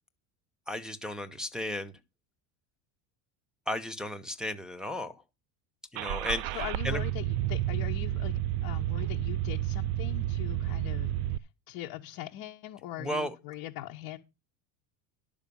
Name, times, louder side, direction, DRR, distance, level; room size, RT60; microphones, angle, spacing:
voice 1, 0.7-1.9 3.7-5.2 5.9-7.0 13.0-13.3, left 1 dB, ahead, 0.9 m, -34 dB
Car / Engine starting, 5.9-11.4, right 14 dB, 60° right, 0.5 m, -31 dB
voice 2, 6.5-8.3 8.6-11.1 11.7-14.2, left 14 dB, 60° left, 1.0 m, -40 dB
10.5 x 5.1 x 6.9 m
supercardioid pair, 120°, 43 cm